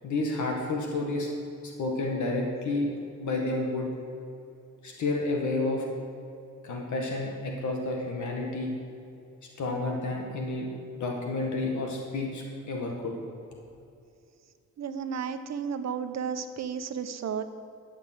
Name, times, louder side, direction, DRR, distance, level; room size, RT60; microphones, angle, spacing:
voice 1, 0.0-1.3 1.6-2.9 3.2-3.9 4.8-5.9 6.6-8.7 9.6-10.7 11.0-13.1, left 2 dB, 75° left, 1 dB, 1.9 m, -30 dB
voice 2, 14.8-17.4, right 7 dB, 65° right, 9 dB, 0.9 m, -33 dB
13.0 x 7.3 x 8.0 m, 2.5 s
wide cardioid pair, 130°, 30 cm